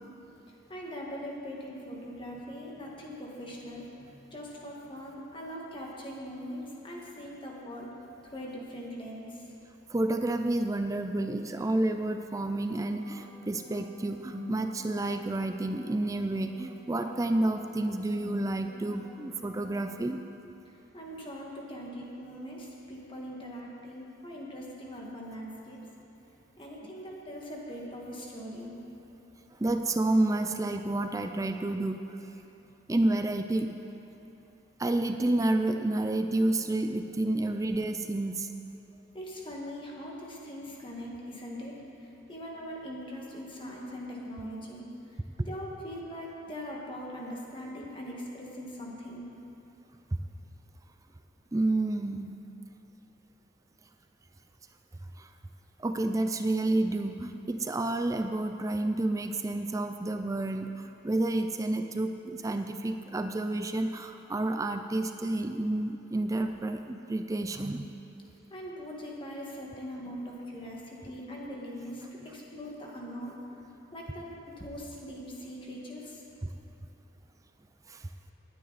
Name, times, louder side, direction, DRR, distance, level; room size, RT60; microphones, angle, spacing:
voice 1, 0.7-7.9 8.3-9.5 20.9-25.8 26.6-28.8 39.1-41.7 42.0-44.9 45.1-49.3 68.5-73.4 73.9-76.2, equal, 25° left, -3 dB, 1.7 m, -41 dB
voice 2, 9.9-20.2 29.6-32.2 32.9-33.7 34.8-38.5 50.1-50.2 51.5-52.4 55.2-55.3 55.8-67.9 76.4-76.5 77.9-78.1, right 2 dB, 15° right, 7 dB, 0.4 m, -30 dB
sound 1, 12.7-19.9, left 1 dB, 45° right, 2.0 m, -45 dB
19.0 x 9.4 x 4.1 m, 2.9 s
head